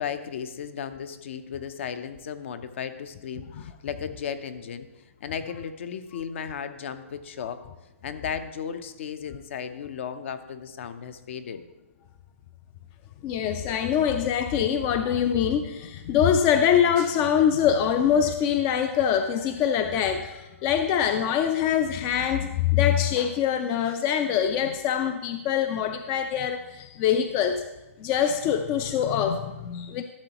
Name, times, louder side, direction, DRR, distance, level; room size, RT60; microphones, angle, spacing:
voice 1, 0.0-4.9 5.2-7.7 8.0-11.6, left 7 dB, 55° left, 11 dB, 0.6 m, -35 dB
voice 2, 13.2-27.6 28.0-30.0, left 8 dB, 25° left, 8 dB, 0.3 m, -24 dB
12.0 x 6.7 x 2.9 m, 1.0 s
hypercardioid pair, 150°, 8 cm